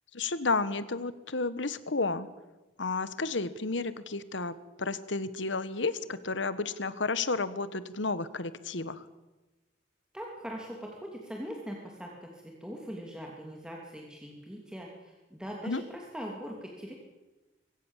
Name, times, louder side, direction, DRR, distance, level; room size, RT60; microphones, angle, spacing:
voice 1, 0.1-2.3 2.8-9.0 15.6-15.8, left 3 dB, 75° left, 15 dB, 1.4 m, -32 dB
voice 2, 10.1-17.0, equal, 5° right, -1 dB, 2.9 m, -41 dB
24.5 x 17.0 x 7.4 m, 1.1 s
head